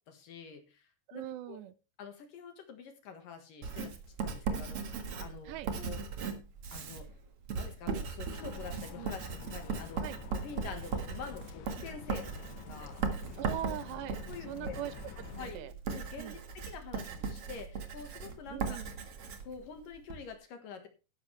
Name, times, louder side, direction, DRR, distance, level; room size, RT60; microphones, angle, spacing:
voice 1, 0.1-1.6 2.0-3.9 4.2-6.0 6.7-7.1 7.6-10.1 10.3-13.0 13.7-13.8 14.3-14.8 15.4-18.8 19.4-20.9, left 6 dB, 60° left, 6 dB, 2.8 m, -47 dB
voice 2, 1.1-1.7 5.5-5.7 9.0-9.1 10.0-10.2 13.4-14.2 14.5-15.7 16.2-16.4 18.5-18.9, right 13 dB, 80° right, 15 dB, 2.8 m, -41 dB
Writing, 3.6-20.2, right 5 dB, 55° right, 1.7 m, -38 dB
sound 1, 8.3-15.5, left 9 dB, 85° left, 3.4 m, -49 dB
13.5 x 11.0 x 3.3 m, 0.31 s
omnidirectional pair, 5.1 m